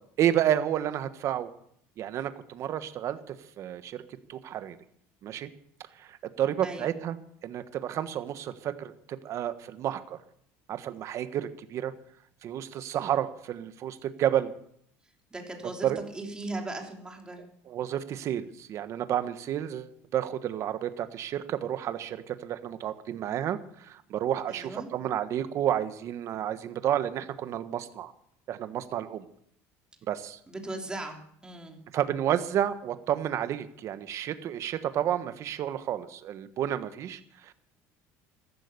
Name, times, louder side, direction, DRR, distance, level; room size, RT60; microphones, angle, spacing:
voice 1, 0.2-1.5 2.0-4.0 4.3-4.8 5.2-5.5 6.0-7.2 7.4-10.2 10.7-11.9 12.4-14.5 15.8-16.0 17.7-28.1 28.5-29.2 30.1-30.4 31.9-37.5, right 10 dB, 50° right, 11 dB, 1.3 m, -31 dB
voice 2, 6.6-7.0 15.3-17.4 24.5-24.9 30.5-31.8, right 2 dB, 10° right, 2 dB, 3.3 m, -38 dB
14.5 x 12.5 x 6.8 m, 0.68 s
cardioid pair, 125°, 7 cm